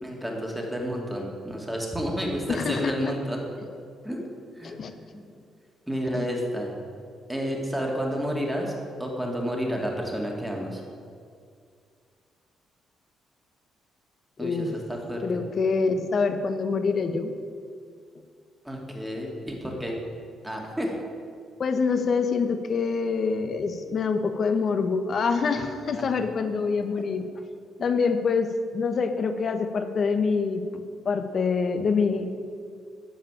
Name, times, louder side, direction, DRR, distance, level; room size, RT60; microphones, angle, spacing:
voice 1, 0.0-3.4 4.0-4.2 4.6-4.8 5.9-6.7 7.3-8.7 9.0-10.8 14.4-15.2 18.6-19.9 20.4-20.9 26.0-26.1, equal, 5° right, -1 dB, 2.6 m, -30 dB
voice 2, 2.5-3.1 4.6-4.9 6.1-6.3 14.4-14.7 15.2-17.3 21.6-27.3 27.8-30.6 31.0-32.3, left 5 dB, 50° left, 8 dB, 1.1 m, -25 dB
13.0 x 4.9 x 8.9 m, 2.2 s
cardioid pair, 90°, 0 cm